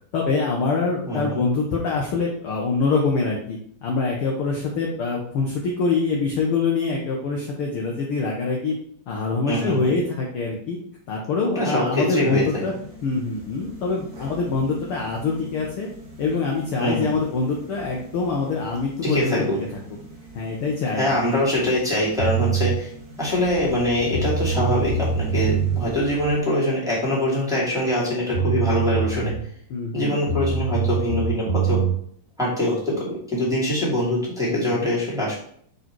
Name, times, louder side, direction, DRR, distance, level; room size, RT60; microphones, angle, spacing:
voice 1, 0.1-8.8 9.1-10.8 11.1-12.7 13.0-15.9 16.2-19.7 20.3-21.1 29.7-30.2 34.5-34.9, left 4 dB, 70° left, -1 dB, 1.3 m, -24 dB
voice 2, 1.0-1.4 9.5-10.0 11.4-12.6 16.8-17.1 19.0-19.6 20.9-22.9 23.2-29.3 29.9-31.8 32.4-35.3, left 1 dB, ahead, -7 dB, 1.9 m, -23 dB
sound 1, 12.2-26.4, right 1 dB, 40° right, 1.2 m, -40 dB
sound 2, 22.2-22.8 23.8-23.9 24.1-25.8 28.0-28.1 28.3-29.5 30.3-32.0, right 5 dB, 60° right, 0.9 m, -23 dB
6.7 x 3.9 x 4.6 m, 0.64 s
omnidirectional pair, 3.7 m